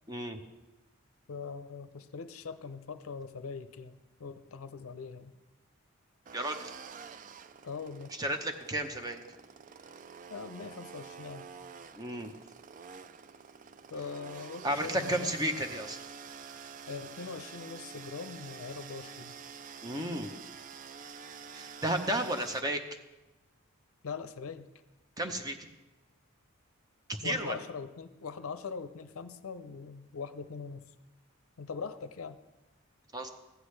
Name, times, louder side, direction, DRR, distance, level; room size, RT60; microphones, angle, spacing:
voice 1, 0.1-0.4 6.3-6.7 8.1-9.2 11.9-12.3 14.6-16.0 19.8-20.3 21.5-22.8 25.2-25.6 27.2-27.6 33.1-33.3, right 1 dB, 15° right, 6 dB, 0.7 m, -33 dB
voice 2, 1.3-5.3 7.6-8.1 10.3-11.5 13.9-15.3 16.9-19.3 24.0-24.7 27.2-30.8 31.6-32.4, left 5 dB, 75° left, 12 dB, 0.5 m, -41 dB
sound 1, 6.3-22.6, right 6 dB, 35° right, 0.3 m, -48 dB
15.0 x 9.9 x 3.2 m, 1.0 s
head